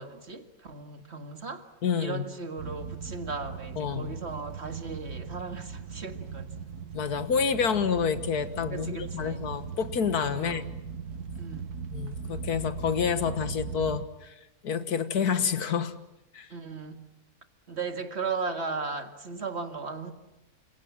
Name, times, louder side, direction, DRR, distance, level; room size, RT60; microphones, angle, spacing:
voice 1, 0.0-1.7 2.0-6.7 8.7-9.5 10.4-10.7 11.4-11.7 16.5-17.0 17.7-20.1, right 4 dB, 45° right, 2.2 m, -36 dB
voice 2, 1.8-2.3 3.8-4.1 6.9-10.6 11.9-14.3 14.6-15.9 16.3-16.5, left 6 dB, 75° left, 2.0 m, -28 dB
sound 1, 2.6-14.0, right 6 dB, 75° right, 1.8 m, -39 dB
29.5 x 27.0 x 7.4 m
omnidirectional pair, 1.6 m